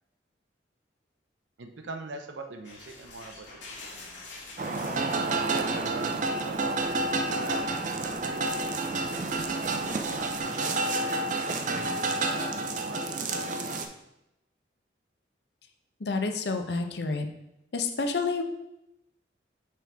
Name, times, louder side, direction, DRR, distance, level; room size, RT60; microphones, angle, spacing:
voice 1, 1.6-4.5 5.5-9.5 10.2-11.3 11.7-13.9, right 3 dB, 85° right, 5 dB, 0.7 m, -43 dB
sound 1, 2.6-10.4, left 3 dB, 85° left, 1.8 m, -49 dB
sound 2, 4.6-13.9, right 2 dB, 45° right, 0.5 m, -29 dB
voice 2, 16.0-17.3 17.7-18.4, left 4 dB, 65° left, 5 dB, 0.6 m, -29 dB
6.1 x 4.5 x 3.4 m, 0.88 s
head